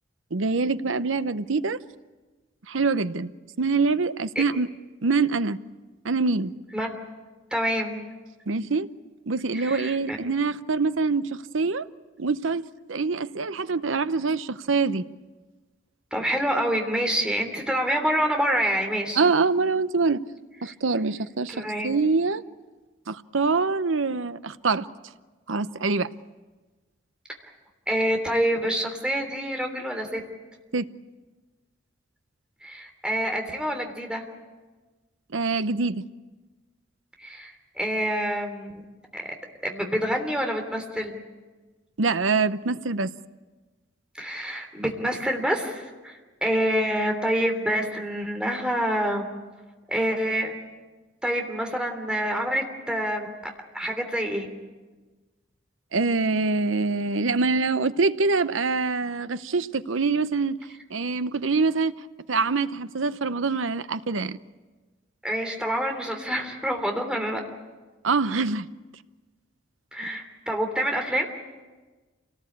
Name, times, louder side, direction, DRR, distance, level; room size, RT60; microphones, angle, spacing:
voice 1, 0.3-1.8 2.7-3.3 3.6-4.7 5.0-5.6 6.0-6.5 8.5-8.9 9.3-11.9 12.2-12.6 12.9-15.0 19.2-20.2 20.6-22.4 23.1-24.9 25.5-26.1 30.7-30.8 35.3-36.0 42.0-43.1 55.9-60.6 60.9-61.9 62.3-64.4 68.0-68.7, right 4 dB, 85° right, 0.8 m, -24 dB
voice 2, 7.5-8.0 9.5-10.2 16.1-19.2 20.6-20.7 21.5-21.9 27.9-30.2 32.6-34.2 37.2-38.8 39.1-39.2 39.6-41.2 44.1-49.3 49.9-50.5 51.2-53.3 53.7-54.5 65.2-67.4 69.9-71.3, equal, 5° right, 3.2 m, -27 dB
27.5 x 19.0 x 8.6 m
head